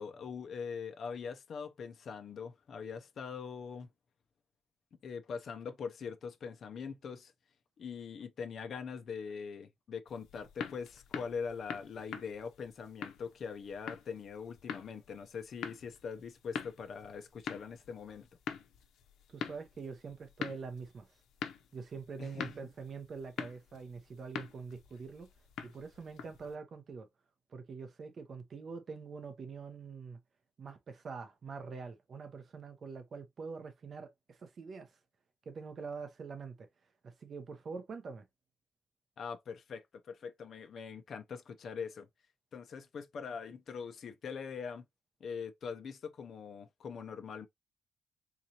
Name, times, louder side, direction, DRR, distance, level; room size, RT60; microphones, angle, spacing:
voice 1, 0.0-3.9 5.0-7.3 7.8-18.3 22.2-22.7 39.2-42.1 42.5-44.8 45.2-47.5, left 6 dB, 45° left, 0.6 m, -42 dB
sound 1, 10.1-26.5, left 7 dB, 90° left, 0.6 m, -45 dB
voice 2, 19.3-21.1 21.7-25.3 25.6-27.1 27.5-30.2 30.6-34.9 35.5-36.7 37.0-38.3, right 5 dB, 35° right, 0.7 m, -45 dB
3.8 x 2.9 x 2.8 m
cardioid pair, 170°, 0 cm